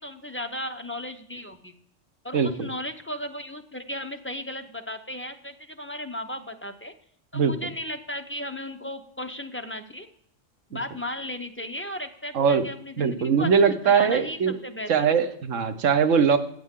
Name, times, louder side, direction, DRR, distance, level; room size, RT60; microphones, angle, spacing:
voice 1, 0.0-1.7 2.2-6.9 7.3-10.1 10.7-13.5 13.8-15.2, left 1 dB, 15° left, 6 dB, 0.6 m, -35 dB
voice 2, 2.3-2.7 7.3-7.5 12.3-12.6 13.0-14.6 14.9-16.4, right 6 dB, 80° right, 10 dB, 1.3 m, -21 dB
14.0 x 9.0 x 3.7 m, 0.66 s
omnidirectional pair, 1.3 m